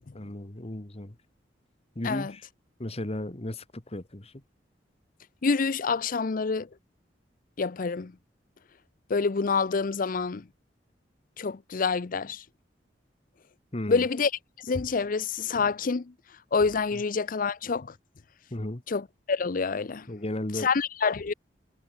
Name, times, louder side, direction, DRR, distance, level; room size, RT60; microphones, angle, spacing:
voice 1, 0.1-1.1 1.9-2.5 2.8-4.3 13.7-14.1 18.5-18.8 20.1-20.7, left 1 dB, 35° left, 1.6 m, -34 dB
voice 2, 5.4-6.7 7.6-8.1 9.1-10.5 11.4-12.4 13.9-14.3 14.6-16.1 16.5-17.9 18.9-20.1 20.5-21.3, left 5 dB, 50° left, 0.6 m, -27 dB
head